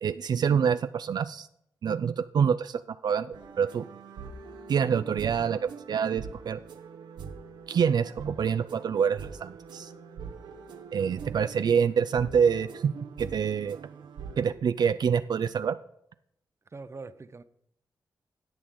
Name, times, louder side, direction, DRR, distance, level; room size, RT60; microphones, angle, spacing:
voice 1, 0.0-1.5 1.8-3.9 4.7-6.6 7.7-9.9 10.9-13.8 14.4-15.8, right 7 dB, 65° right, 0.4 m, -26 dB
sound 1, 3.3-14.5, right 5 dB, 85° right, 0.9 m, -43 dB
voice 2, 11.1-11.7 16.7-17.4, right 3 dB, 35° right, 0.7 m, -45 dB
16.5 x 6.1 x 3.8 m
cardioid pair, 60°, 8 cm